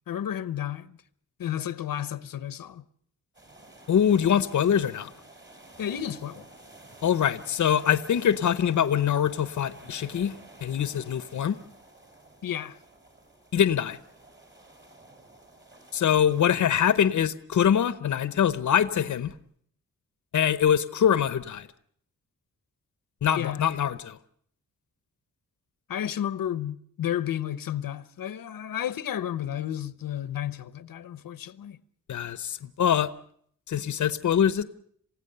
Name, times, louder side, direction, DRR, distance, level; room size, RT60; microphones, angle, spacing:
voice 1, 0.1-1.0 1.4-2.8 5.8-6.5 12.4-12.8 23.4-23.6 25.9-31.8, left 10 dB, 85° left, 1.0 m, -32 dB
sound 1, 3.3-17.0, right 2 dB, 35° right, 5.0 m, -51 dB
voice 2, 3.9-5.1 7.0-10.3 10.6-11.6 13.5-14.0 15.9-19.3 20.3-21.7 23.2-24.2 32.1-33.1 33.7-34.6, left 9 dB, 60° left, 0.8 m, -24 dB
28.0 x 16.5 x 6.7 m
wide cardioid pair, 175°, 33 cm